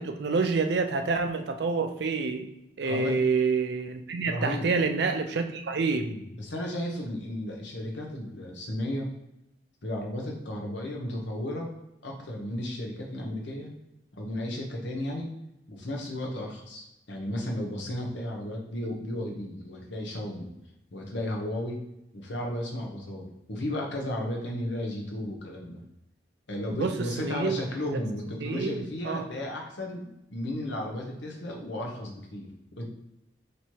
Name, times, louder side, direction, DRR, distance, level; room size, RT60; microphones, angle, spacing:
voice 1, 0.0-2.5 2.8-6.1 26.7-27.6 28.4-28.8 29.0-29.3, right 4 dB, 65° right, 7 dB, 0.4 m, -27 dB
voice 2, 2.8-3.2 4.1-4.7 6.0-9.1 9.8-11.7 12.0-13.7 14.1-15.3 15.7-20.5 20.9-21.8 22.1-25.8 26.5-32.9, left 1 dB, 75° left, 0 dB, 1.0 m, -34 dB
3.2 x 3.0 x 4.4 m, 0.87 s
head